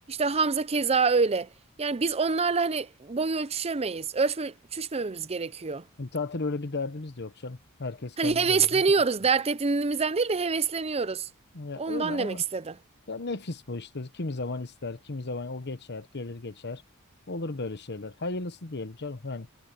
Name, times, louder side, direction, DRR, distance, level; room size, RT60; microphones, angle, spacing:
voice 1, 0.1-1.5 1.8-5.8 8.2-11.3 11.8-12.8, right 4 dB, 30° right, 0.6 m, -26 dB
voice 2, 6.0-9.0 11.5-12.4 13.1-16.8 17.3-19.5, left 3 dB, 50° left, 1.1 m, -35 dB
head